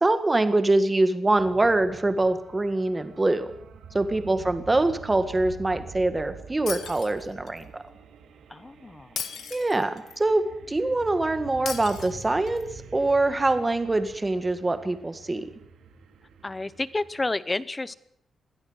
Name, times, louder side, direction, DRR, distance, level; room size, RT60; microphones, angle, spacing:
voice 1, 0.0-3.5 3.9-7.8 9.5-12.7 12.9-15.4, right 2 dB, 15° right, 10 dB, 1.8 m, -24 dB
sound 1, 1.4-17.3, right 5 dB, 85° right, 2.9 m, -46 dB
Shatter, 6.7-7.6 9.2-10.2 11.7-12.6, left 7 dB, 65° left, 2.2 m, -36 dB
voice 2, 8.5-9.2 16.4-17.9, left 2 dB, 15° left, 17 dB, 0.9 m, -31 dB
22.5 x 16.0 x 8.0 m, 0.71 s
wide cardioid pair, 165°, 0 cm